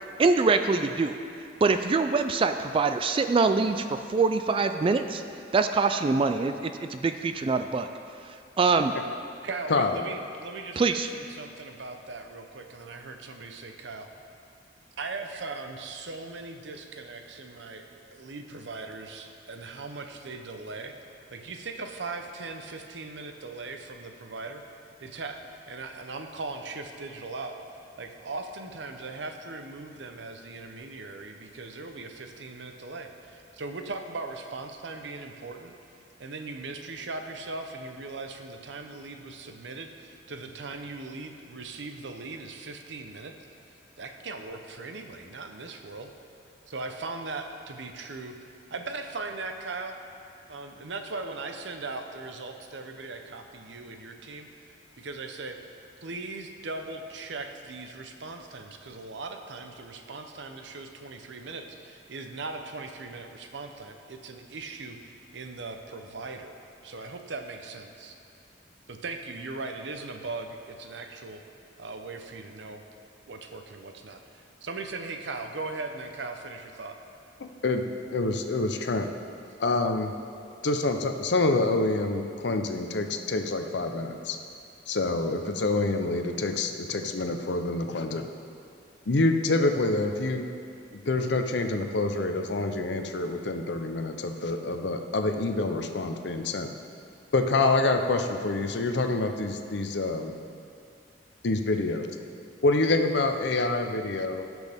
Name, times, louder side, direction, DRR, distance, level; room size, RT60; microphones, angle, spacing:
voice 1, 0.2-1.2 1.6-5.2 5.5-7.9 8.6-8.9 10.8-11.1, right 4 dB, 30° right, 8 dB, 0.3 m, -24 dB
voice 2, 9.4-14.1 15.0-21.0 21.3-24.6 25.0-25.4 25.7-27.6 28.0-35.7 36.2-43.3 44.0-46.1 46.7-48.4 48.7-50.0 50.5-54.5 55.0-55.6 56.0-66.6 66.8-68.2 68.9-71.4 71.8-72.8 73.3-77.0, right 3 dB, 70° right, 5 dB, 0.8 m, -39 dB
voice 3, 77.4-77.8 78.1-79.1 79.6-80.1 80.6-84.4 84.9-88.3 89.1-90.5 91.1-96.7 97.3-100.3 101.4-102.1 102.6-104.5, left 2 dB, 65° left, 6 dB, 0.6 m, -26 dB
17.0 x 6.2 x 3.5 m, 2.5 s
head